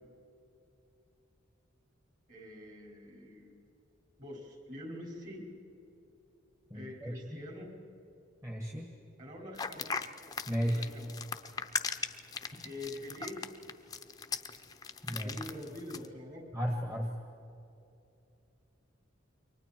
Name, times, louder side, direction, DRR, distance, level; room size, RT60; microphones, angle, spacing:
voice 1, 2.3-3.5 4.2-5.5 6.7-7.8 9.2-9.9 10.6-11.1 12.6-13.4 15.1-16.5, left 1 dB, 40° right, 0 dB, 5.7 m, -45 dB
voice 2, 6.7-7.4 8.4-8.9 10.5-10.8 15.0-15.4 16.5-17.1, equal, 15° right, 1 dB, 1.6 m, -34 dB
sound 1, 9.6-16.1, left 5 dB, 20° left, 0.8 m, -38 dB
29.0 x 24.0 x 4.6 m, 2.8 s
head